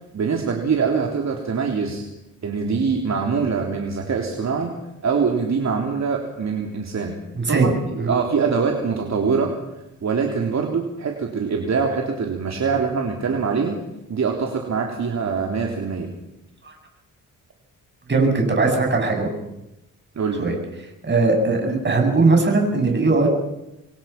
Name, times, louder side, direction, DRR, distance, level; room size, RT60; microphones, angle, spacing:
voice 1, 0.1-2.0 2.4-4.8 5.0-7.2 7.5-9.5 10.0-13.8 14.1-16.1 20.2-20.4, right 5 dB, 55° right, 1 dB, 3.6 m, -23 dB
voice 2, 7.4-7.7 8.0-8.1 16.6-16.7 18.1-19.3 20.4-20.6 21.0-23.3, right 3 dB, 35° right, 2 dB, 7.8 m, -19 dB
27.5 x 23.5 x 6.0 m, 0.90 s
cardioid pair, 105°, 33 cm